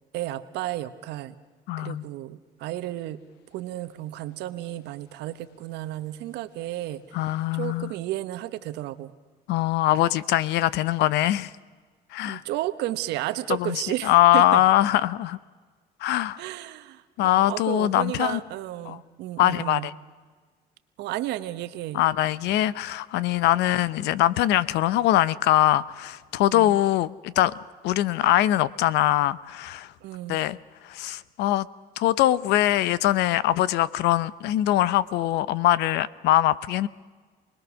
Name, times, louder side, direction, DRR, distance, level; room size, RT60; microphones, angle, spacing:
voice 1, 0.1-1.4 1.8-3.2 3.5-9.1 12.2-14.6 16.4-19.9 21.0-22.0 26.5-26.8 30.0-30.4, right 14 dB, 85° right, 1.3 m, -33 dB
voice 2, 1.7-2.0 7.1-7.9 9.5-11.5 12.1-12.4 13.6-15.4 16.0-16.4 17.2-18.4 18.9-19.0 19.4-19.9 21.9-27.5 27.8-29.9 30.3-30.6 30.8-31.7 32.0-36.9, left 14 dB, 85° left, 0.8 m, -22 dB
29.0 x 20.5 x 6.4 m
cardioid pair, 110°, 17 cm